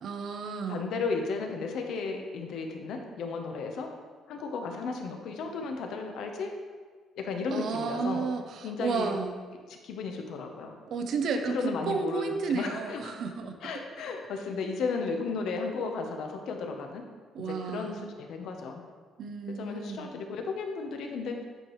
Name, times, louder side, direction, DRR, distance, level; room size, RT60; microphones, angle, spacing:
voice 1, 0.0-0.9 7.5-9.4 10.9-13.6 17.3-18.1 19.2-20.1, right 5 dB, 50° right, 6 dB, 0.5 m, -32 dB
voice 2, 0.7-3.9 4.3-6.5 7.2-8.2 8.6-9.2 9.7-10.8 11.5-13.1 13.6-17.0 17.4-18.8 19.6-21.4, left 4 dB, 65° left, 4 dB, 0.8 m, -34 dB
8.6 x 4.8 x 3.1 m, 1.5 s
cardioid pair, 170°, 0 cm